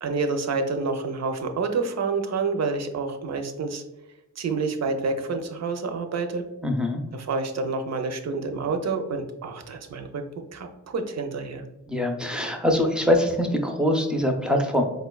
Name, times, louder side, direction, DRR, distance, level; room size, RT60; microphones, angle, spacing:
voice 1, 0.0-3.8 4.4-6.4 7.1-10.2 10.5-11.6, right 4 dB, 60° right, 6 dB, 0.5 m, -28 dB
voice 2, 6.6-7.0 11.9-14.8, left 1 dB, 5° right, 2 dB, 0.4 m, -23 dB
4.7 x 2.2 x 2.2 m, 0.98 s
wide cardioid pair, 130°, 30 cm